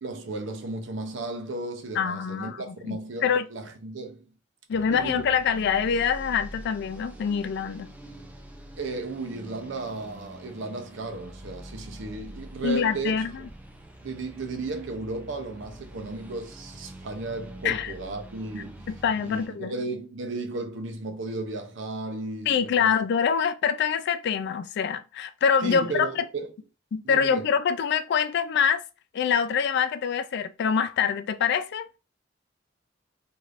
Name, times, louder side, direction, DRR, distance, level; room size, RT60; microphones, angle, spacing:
voice 1, 0.0-4.3 4.9-5.3 8.8-13.3 14.0-18.9 19.2-22.9 25.6-26.5 27.0-27.5, right 3 dB, 70° right, 0.6 m, -34 dB
voice 2, 2.0-3.5 4.7-7.9 12.6-13.3 17.6-17.9 18.9-19.7 22.5-26.1 26.9-28.8 29.1-32.0, left 7 dB, 60° left, 0.3 m, -25 dB
sound 1, 4.7-19.5, right 1 dB, 10° right, 0.4 m, -45 dB
3.2 x 2.6 x 2.5 m
head